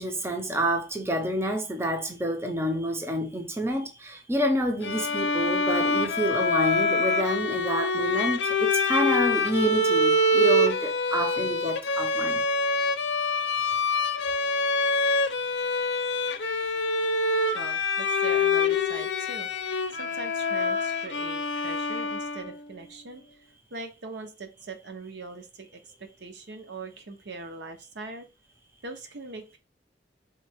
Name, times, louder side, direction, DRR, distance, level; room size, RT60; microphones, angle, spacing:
voice 1, 0.0-12.4, right 1 dB, 15° right, 0.6 m, -28 dB
Bowed string instrument, 4.8-22.6, left 2 dB, 85° left, 0.5 m, -25 dB
voice 2, 17.5-19.5 19.9-23.4 23.7-25.8 26.2-28.3 28.8-29.6, right 3 dB, 75° right, 0.8 m, -41 dB
3.6 x 3.3 x 3.4 m
head